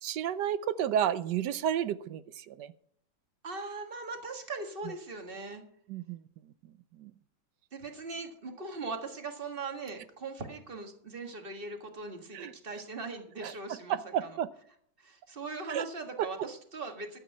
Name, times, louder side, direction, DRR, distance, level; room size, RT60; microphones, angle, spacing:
voice 1, 0.0-2.7 5.9-6.2 6.9-7.1 12.3-12.5 13.4-14.5 15.7-15.8, right 10 dB, 70° right, 15 dB, 1.2 m, -32 dB
voice 2, 3.4-5.6 7.7-14.3 15.0-17.2, right 3 dB, 30° right, 5 dB, 1.7 m, -40 dB
12.5 x 8.4 x 5.6 m, 0.66 s
omnidirectional pair, 2.0 m